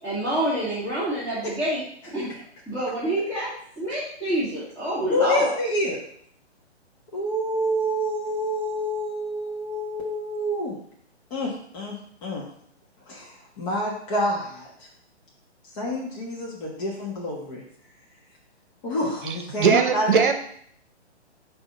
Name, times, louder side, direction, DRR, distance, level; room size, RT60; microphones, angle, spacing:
voice 1, 0.0-1.8 2.1-2.3 2.7-3.5 3.8-5.6, right 1 dB, 5° left, -11 dB, 1.5 m, -27 dB
voice 2, 5.1-6.0 7.1-10.8 11.3-12.0 12.2-12.4 13.1-14.9 15.8-17.6 18.8-20.3, equal, 30° left, -4 dB, 1.4 m, -27 dB
voice 3, 19.6-20.3, right 6 dB, 50° right, 7 dB, 0.9 m, -19 dB
6.3 x 3.0 x 5.3 m, 0.64 s
figure-of-eight pair, 140°, 34 cm